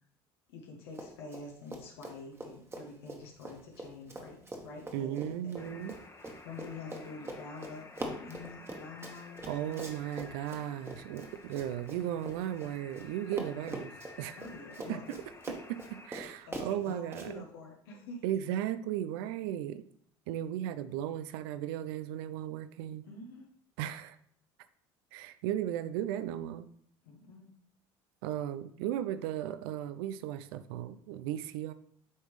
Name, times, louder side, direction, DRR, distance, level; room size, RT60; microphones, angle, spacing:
voice 1, 0.5-5.8 6.4-9.8 10.5-10.6 14.3-15.2 16.4-18.2 23.1-23.5 25.5-25.6 27.0-27.5, left 3 dB, 85° left, 0 dB, 1.1 m, -47 dB
Run, 0.9-1.4 1.7-13.1 13.3-17.3, right 2 dB, 20° right, 1.3 m, -43 dB
voice 2, 4.9-5.9 9.5-13.9 14.2-14.4 14.9-15.0 15.5-17.4 18.2-19.8 20.3-23.1 23.8-24.2 25.1-26.7 28.2-31.7, right 11 dB, 75° right, 13 dB, 0.4 m, -36 dB
sound 1, 5.6-16.1, left 3 dB, 25° left, 1.0 m, -53 dB
9.5 x 3.5 x 3.2 m, 0.64 s
hypercardioid pair, 75°, 12 cm